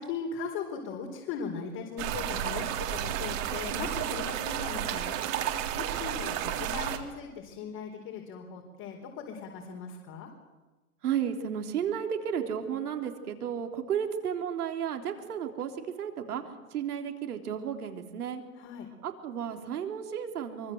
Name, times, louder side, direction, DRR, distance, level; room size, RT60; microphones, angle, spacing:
voice 1, 0.0-5.3 5.7-10.3 18.6-18.9, left 6 dB, 40° left, 0 dB, 4.4 m, -39 dB
sound 1, 2.0-7.0, right 11 dB, 55° right, 3.5 m, -32 dB
voice 2, 11.0-16.4 16.7-18.4 19.0-20.7, right 8 dB, 75° right, 5 dB, 3.7 m, -33 dB
24.5 x 24.0 x 8.0 m, 1.2 s
hypercardioid pair, 115°, 46 cm